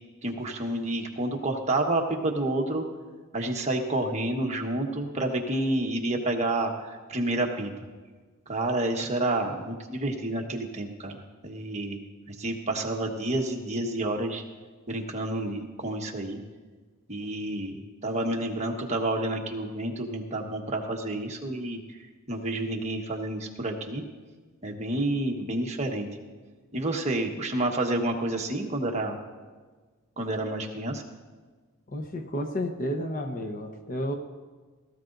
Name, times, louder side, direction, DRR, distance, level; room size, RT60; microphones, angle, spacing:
voice 1, 0.2-2.8 3.3-7.7 8.5-11.1 11.4-12.0 12.3-14.4 14.9-16.4 17.1-21.8 22.3-24.0 24.6-26.1 26.7-29.2 30.2-31.0, right 1 dB, 30° right, 1 dB, 1.3 m, -29 dB
voice 2, 31.9-34.1, equal, 40° left, 5 dB, 0.9 m, -31 dB
17.5 x 14.5 x 2.6 m, 1.4 s
head